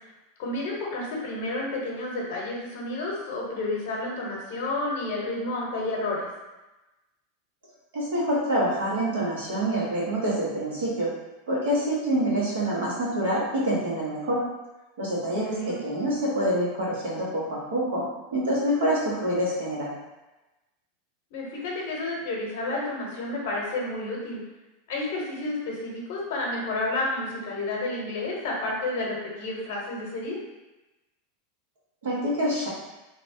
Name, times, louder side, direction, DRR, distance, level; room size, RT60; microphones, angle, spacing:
voice 1, 0.4-6.2 15.3-15.8 21.3-24.4 24.9-30.4, left 2 dB, 70° left, -2 dB, 0.8 m, -30 dB
voice 2, 7.9-11.1 11.5-14.4 15.0-18.0 18.3-19.9 32.0-32.7, right 1 dB, 85° right, -6 dB, 1.0 m, -26 dB
2.8 x 2.2 x 2.7 m, 1.1 s
supercardioid pair, 120°, 0 cm